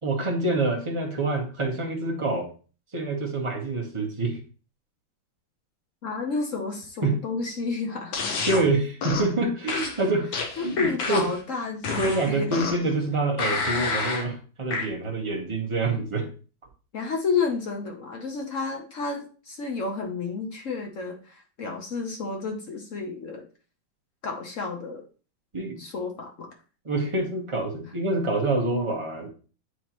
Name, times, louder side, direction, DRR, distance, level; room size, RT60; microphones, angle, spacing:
voice 1, 0.0-2.5 2.9-4.4 7.0-7.2 8.5-10.3 10.6-11.3 11.9-16.3 25.5-25.8 26.8-29.3, right 2 dB, 20° right, 0 dB, 0.9 m, -26 dB
voice 2, 6.0-8.5 10.6-12.5 16.9-23.5 24.2-25.0 25.8-26.5, left 4 dB, 55° left, 2 dB, 0.9 m, -31 dB
sound 1, 8.1-8.6 9.0-9.3 9.7-11.4 11.8-12.9 13.4-14.3 14.7-14.9, left 4 dB, 80° left, 1.8 m, -29 dB
9.0 x 3.6 x 3.0 m, 0.36 s
omnidirectional pair, 2.1 m